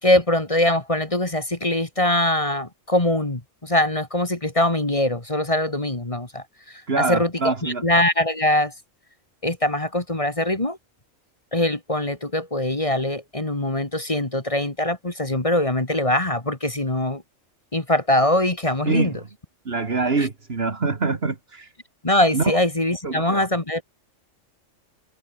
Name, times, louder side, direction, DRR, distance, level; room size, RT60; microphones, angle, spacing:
voice 1, 0.0-8.7 9.4-10.8 11.5-17.2 17.7-19.2 20.2-20.3 22.0-23.8, left 1 dB, 25° left, 2.1 m, -22 dB
voice 2, 6.9-7.8 18.9-19.2 19.7-21.7 22.3-22.5 23.0-23.5, right 4 dB, 50° right, 2.0 m, -24 dB
omnidirectional pair, 1.3 m